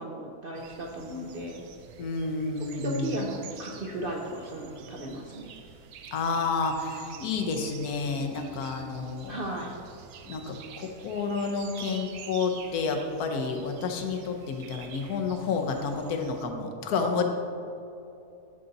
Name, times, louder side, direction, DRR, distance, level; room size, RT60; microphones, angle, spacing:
voice 1, 0.0-1.7 2.6-5.5 9.3-9.7, right 1 dB, 60° right, -1 dB, 0.6 m, -35 dB
sound 1, 0.5-16.5, right 7 dB, 80° right, 1.1 m, -48 dB
voice 2, 2.0-3.2 6.1-9.4 10.2-17.3, left 4 dB, 80° left, 4 dB, 1.3 m, -30 dB
11.5 x 3.9 x 4.0 m, 2.7 s
omnidirectional pair, 1.6 m